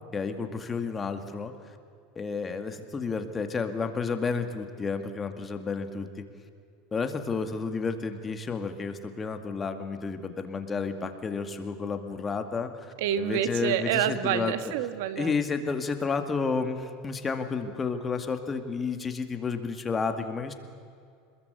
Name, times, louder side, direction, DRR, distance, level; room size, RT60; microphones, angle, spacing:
voice 1, 0.1-1.5 2.2-6.2 6.9-14.5 15.2-20.5, left 5 dB, 20° left, 7 dB, 2.2 m, -31 dB
voice 2, 13.0-15.3, right 10 dB, 75° right, 11 dB, 1.7 m, -28 dB
26.5 x 21.5 x 8.3 m, 2.3 s
supercardioid pair, 125°, 0 cm